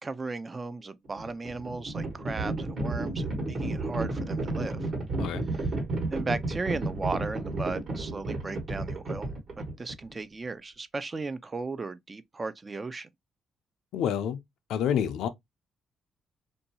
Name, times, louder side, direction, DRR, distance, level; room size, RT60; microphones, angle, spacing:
voice 1, 0.0-4.9 5.6-5.7 6.1-9.3 9.6-13.1, right 3 dB, 30° right, 0.4 m, -36 dB
Livestock farm animals working animals, 1.1-10.1, right 2 dB, 55° right, 1.2 m, -32 dB
voice 2, 13.9-14.4 14.7-15.3, left 9 dB, 85° left, 0.4 m, -28 dB
2.6 x 2.2 x 2.8 m
cardioid pair, 90°, 0 cm